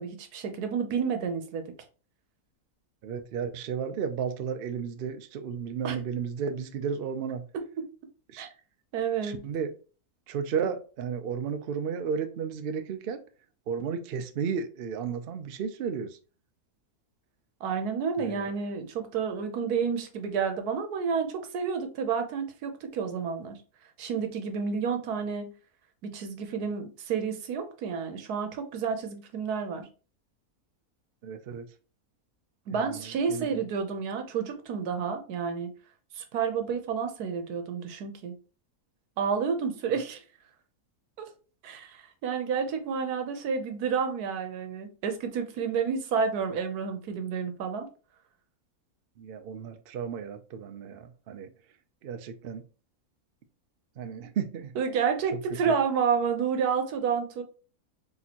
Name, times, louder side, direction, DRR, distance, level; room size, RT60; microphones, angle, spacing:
voice 1, 0.0-1.7 5.8-6.0 7.5-7.9 8.4-8.5 8.9-9.4 17.6-23.6 24.0-25.5 26.0-29.9 32.7-35.7 36.1-38.4 39.2-40.2 41.2-41.3 41.6-47.9 54.8-57.4, right 6 dB, 90° right, 1.3 m, -30 dB
voice 2, 3.0-7.5 8.3-8.5 9.2-9.7 10.3-13.2 13.7-16.2 18.2-18.5 31.2-31.7 32.7-33.6 49.2-51.5 52.0-52.6 54.0-54.8 55.3-55.8, right 6 dB, 70° right, 0.5 m, -33 dB
4.2 x 3.4 x 2.8 m
omnidirectional pair, 1.6 m